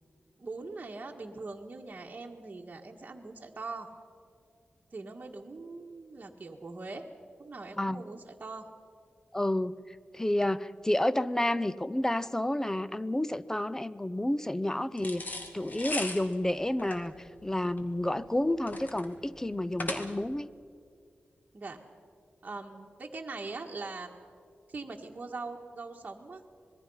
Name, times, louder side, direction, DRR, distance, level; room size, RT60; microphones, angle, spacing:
voice 1, 0.4-3.9 4.9-7.1 7.4-8.7 21.5-21.8 22.4-24.2 24.7-26.4, right 3 dB, 40° right, 0 dB, 1.7 m, -42 dB
voice 2, 9.3-20.5, left 1 dB, 15° left, 16 dB, 0.6 m, -30 dB
sound 1, 15.0-20.4, left 2 dB, 50° left, 2.2 m, -39 dB
26.0 x 21.0 x 5.7 m, 2.2 s
wide cardioid pair, 90°, 4 cm